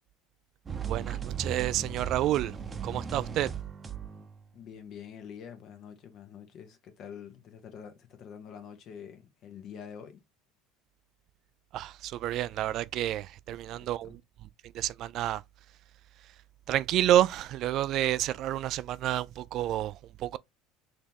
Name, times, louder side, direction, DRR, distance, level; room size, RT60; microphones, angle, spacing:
sound 1, 0.7-4.4, right 6 dB, 25° right, 0.8 m, -37 dB
voice 1, 0.9-2.6 2.8-3.5 11.7-14.2 14.7-15.4 16.7-20.4, right 12 dB, 55° right, 0.3 m, -29 dB
voice 2, 4.5-10.2 13.6-14.2, left 8 dB, 50° left, 1.2 m, -46 dB
4.1 x 2.9 x 3.5 m
hypercardioid pair, 75°, 0 cm